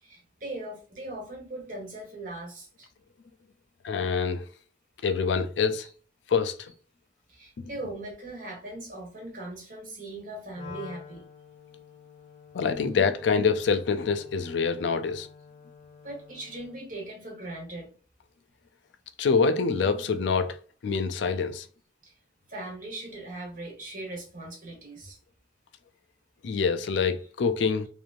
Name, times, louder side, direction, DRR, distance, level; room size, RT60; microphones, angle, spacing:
voice 1, 0.0-2.9 5.8-5.9 7.3-11.2 16.0-17.9 22.0-22.1 22.5-25.2, right 2 dB, 45° right, 1.3 m, -39 dB
voice 2, 3.8-4.4 5.0-5.9 6.3-6.7 12.5-15.3 19.2-20.6 20.8-21.7 26.4-27.9, left 5 dB, 85° left, 0.4 m, -25 dB
Wind instrument woodwind instrument, 10.5-16.9, left 6 dB, 30° left, 0.7 m, -49 dB
3.0 x 2.6 x 2.5 m
head